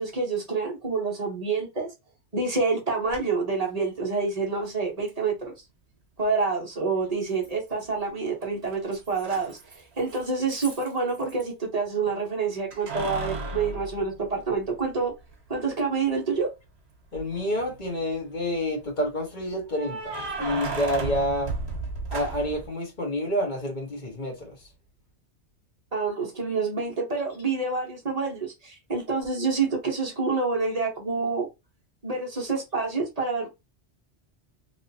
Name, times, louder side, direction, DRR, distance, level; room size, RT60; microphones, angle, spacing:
voice 1, 0.0-1.9 2.3-5.5 6.2-15.1 15.5-16.5 25.9-31.5 32.0-33.5, right 4 dB, 35° right, 1.2 m, -27 dB
Keys jangling, 3.1-3.2 5.1-5.2 7.4-8.0 8.3-11.4 12.7-14.8 15.3-15.4 17.2-17.7 19.7-22.7, right 3 dB, 70° right, 1.3 m, -35 dB
voice 2, 17.1-21.5 22.1-24.6, equal, 45° left, 1.5 m, -28 dB
3.2 x 2.8 x 2.7 m
omnidirectional pair, 1.1 m